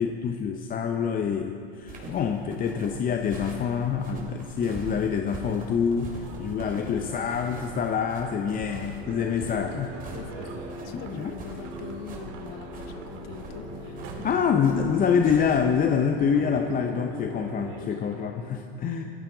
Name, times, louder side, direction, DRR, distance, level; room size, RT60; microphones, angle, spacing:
voice 1, 0.0-10.0 10.9-11.3 14.2-19.0, left 7 dB, 30° left, 5 dB, 0.7 m, -26 dB
sound 1, 1.8-15.8, right 2 dB, 25° right, 3.8 m, -42 dB
sound 2, 6.2-18.4, right 4 dB, 60° right, 2.1 m, -45 dB
sound 3, 8.9-18.0, left 1 dB, 10° left, 3.4 m, -41 dB
voice 2, 10.1-14.4, left 8 dB, 70° left, 8 dB, 1.1 m, -43 dB
17.5 x 14.0 x 3.9 m, 2.6 s
hypercardioid pair, 105°, 31 cm